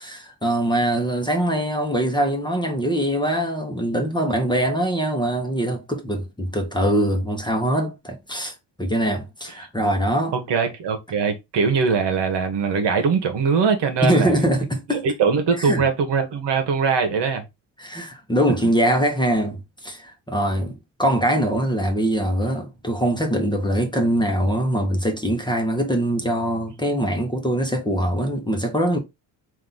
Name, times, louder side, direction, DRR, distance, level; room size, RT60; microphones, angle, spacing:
voice 1, 0.0-10.3 14.0-15.0 15.6-15.8 17.8-29.0, right 1 dB, 10° left, 1.1 m, -23 dB
voice 2, 10.3-14.4 14.9-17.4, right 5 dB, 60° right, 1.3 m, -21 dB
3.7 x 2.8 x 3.8 m
supercardioid pair, 70°, 48 cm